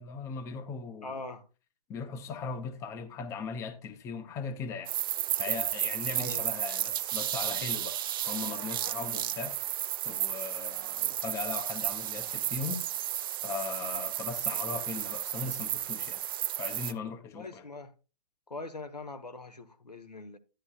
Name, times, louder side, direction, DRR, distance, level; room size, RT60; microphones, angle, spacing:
voice 1, 0.0-1.1 1.9-4.9 5.4-8.0 8.3-9.7 10.1-13.1 13.4-16.2 16.6-17.6, left 5 dB, 15° left, 0.7 m, -38 dB
voice 2, 1.0-1.5 6.1-6.5 9.1-9.3 17.3-17.9 18.5-20.4, left 3 dB, 85° left, 1.1 m, -42 dB
sound 1, 4.9-16.9, right 12 dB, 35° right, 0.5 m, -33 dB
10.5 x 9.7 x 2.4 m
figure-of-eight pair, 125°, 20 cm